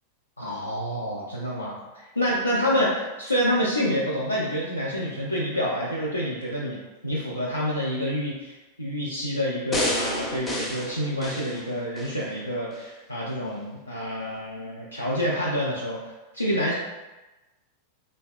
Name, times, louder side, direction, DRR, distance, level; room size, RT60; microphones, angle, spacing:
voice 1, 0.4-1.8 2.2-16.0 16.3-16.7, equal, 85° left, -6 dB, 0.4 m, -27 dB
sound 1, 9.7-12.2 12.7-12.8, left 1 dB, 15° left, 0.5 m, -30 dB
3.3 x 2.1 x 2.3 m, 1.1 s
figure-of-eight pair, 90°, 0 cm